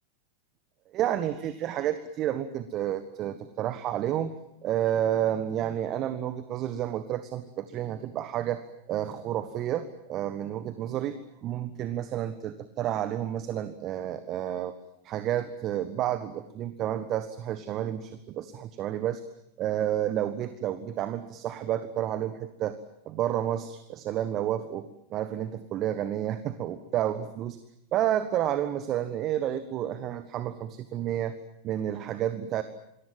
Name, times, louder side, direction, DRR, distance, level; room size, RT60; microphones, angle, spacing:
voice 1, 0.9-4.3 4.6-8.6 8.9-14.7 15.0-19.2 19.6-22.8 23.0-27.6 27.9-31.3 31.6-32.6, right 11 dB, 35° right, 12 dB, 1.4 m, -30 dB
27.0 x 21.5 x 7.7 m, 0.78 s
figure-of-eight pair, 90°, 0 cm